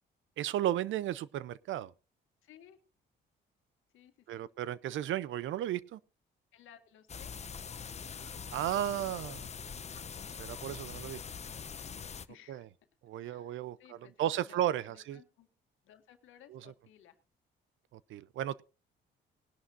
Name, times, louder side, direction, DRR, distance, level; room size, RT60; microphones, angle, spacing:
voice 1, 0.4-1.9 4.3-6.0 8.2-9.5 10.4-11.2 12.5-12.6 13.0-13.8 14.2-15.2 16.5-16.6 17.9-18.6, right 12 dB, 75° right, 0.6 m, -34 dB
voice 2, 2.4-2.8 3.9-4.5 6.5-7.4 12.3-12.7 13.2-15.5 15.8-17.2, left 10 dB, 85° left, 1.7 m, -59 dB
sound 1, 7.1-12.2, left 6 dB, 35° left, 0.7 m, -43 dB
19.5 x 11.0 x 2.6 m
cardioid pair, 90°, 20 cm